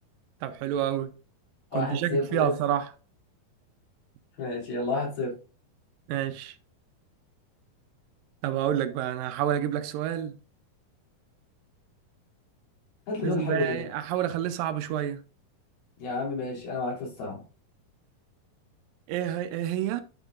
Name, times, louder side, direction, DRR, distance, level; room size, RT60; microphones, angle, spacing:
voice 1, 0.4-1.1 1.7-2.9 6.1-6.6 8.4-10.4 13.2-15.2 19.1-20.0, right 11 dB, 80° right, 2.3 m, -29 dB
voice 2, 1.7-2.5 4.4-5.3 13.1-13.8 16.0-17.4, left 2 dB, 90° left, 4.8 m, -30 dB
11.5 x 5.4 x 2.4 m
omnidirectional pair, 4.1 m